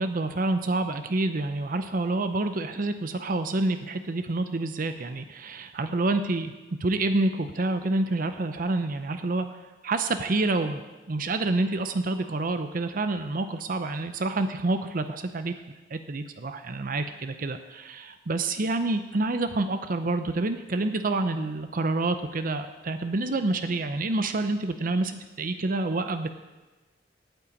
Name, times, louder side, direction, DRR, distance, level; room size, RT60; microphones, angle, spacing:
voice 1, 0.0-6.5 6.8-9.6 9.8-10.8 11.1-15.5 15.9-26.3, right 2 dB, 50° right, 9 dB, 0.6 m, -28 dB
9.1 x 8.6 x 8.3 m, 1.2 s
head